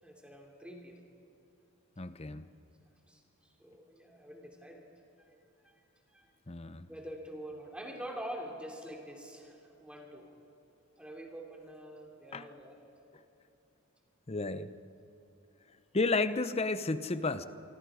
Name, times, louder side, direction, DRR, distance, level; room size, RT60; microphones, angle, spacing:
voice 1, 0.0-1.0 3.1-4.9 5.6-5.8 6.1-6.4 6.9-10.3 11.0-12.8, equal, 5° right, 0 dB, 2.8 m, -46 dB
voice 2, 2.0-2.5 6.5-6.9 12.3-12.5 14.3-14.7 15.9-17.4, left 3 dB, 30° left, 12 dB, 0.8 m, -32 dB
26.0 x 24.5 x 4.9 m, 2.9 s
head